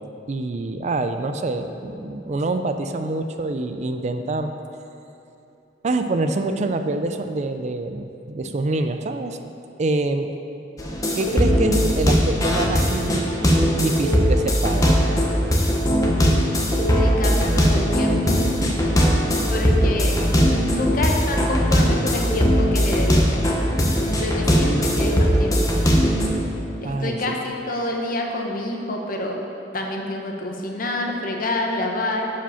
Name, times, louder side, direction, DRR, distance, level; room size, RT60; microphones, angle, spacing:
voice 1, 0.3-4.5 5.8-9.4 9.8-10.3 11.2-15.0 26.8-27.3, right 2 dB, 40° right, 7 dB, 0.4 m, -26 dB
sound 1, 10.8-26.3, equal, 20° left, 0.9 m, -19 dB
voice 2, 16.8-18.8 19.5-20.2 20.7-23.5 24.1-25.7 26.8-29.4 29.7-32.3, left 1 dB, 50° left, 1 dB, 1.1 m, -27 dB
11.0 x 5.1 x 5.7 m, 2.8 s
head